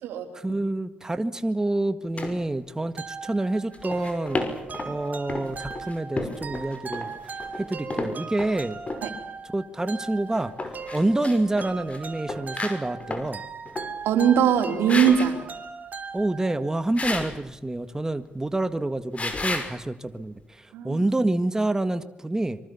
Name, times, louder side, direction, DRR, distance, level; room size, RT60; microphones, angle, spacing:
voice 1, 0.3-4.4 4.9-8.8 9.5-10.5 10.9-13.4 16.1-22.6, right 2 dB, 15° right, 11 dB, 1.7 m, -27 dB
sound 1, 2.2-2.4 3.7-4.9 5.3-8.6 8.9-9.0 10.3-12.0 12.3-13.3 13.7-13.9 14.4-14.5 14.9-15.3 17.0-17.4 19.1-19.7, left 2 dB, 35° left, 5.8 m, -32 dB
sound 2, 3.0-16.8, right 5 dB, 45° right, 3.1 m, -39 dB
voice 2, 14.0-15.4 20.7-21.0, right 8 dB, 80° right, 6 dB, 3.7 m, -21 dB
25.0 x 24.0 x 7.1 m, 0.91 s
supercardioid pair, 65°, 4 cm